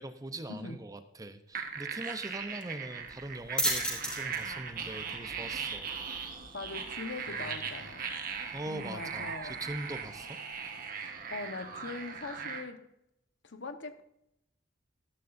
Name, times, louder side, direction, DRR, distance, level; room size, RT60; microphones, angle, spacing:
voice 1, 0.0-6.2 7.3-7.6 8.5-10.7, right 2 dB, 20° right, 9 dB, 0.7 m, -42 dB
sound 1, 1.5-12.6, right 6 dB, 50° right, 1.5 m, -39 dB
sound 2, 3.0-10.2, equal, 5° left, 5.0 m, -39 dB
voice 2, 6.5-8.1 8.7-9.6 11.0-12.8 13.4-14.0, left 3 dB, 70° left, 8 dB, 1.1 m, -41 dB
13.0 x 12.5 x 2.6 m, 0.81 s
head